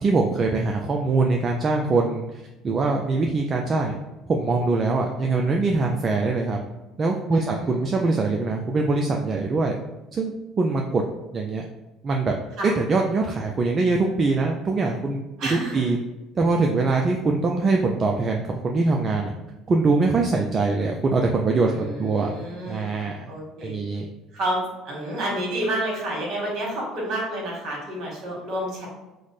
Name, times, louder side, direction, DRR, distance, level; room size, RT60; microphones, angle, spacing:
voice 1, 0.0-2.3 2.6-4.0 4.3-6.6 7.0-9.8 10.1-11.0 11.3-11.6 12.0-12.3 12.8-15.2 15.5-16.0 16.4-19.3 19.7-22.3 22.6-23.3 23.6-24.1, right 3 dB, 35° right, 1 dB, 0.3 m, -23 dB
voice 2, 7.3-8.0 12.6-12.7 15.4-15.8 21.7-24.0 24.3-28.9, right 1 dB, 60° right, -2 dB, 1.4 m, -30 dB
3.1 x 2.1 x 4.0 m, 1.0 s
hypercardioid pair, 75°, 0 cm